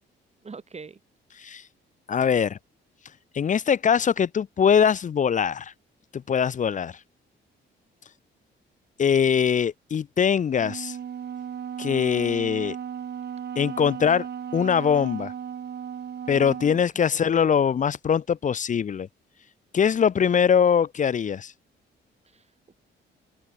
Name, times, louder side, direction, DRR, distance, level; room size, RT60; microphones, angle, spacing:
voice 1, 0.4-1.0 16.7-17.4 22.3-22.7, right 4 dB, 35° right, 6.8 m, -44 dB
voice 2, 2.1-2.6 3.3-5.7 6.1-7.0 9.0-11.0 11.8-12.8 13.6-14.3 14.5-15.3 16.3-19.1 19.7-21.5, left 7 dB, 40° left, 0.6 m, -22 dB
Wind instrument woodwind instrument, 10.6-16.8, right 8 dB, 55° right, 4.3 m, -35 dB
cardioid pair, 90°, 20 cm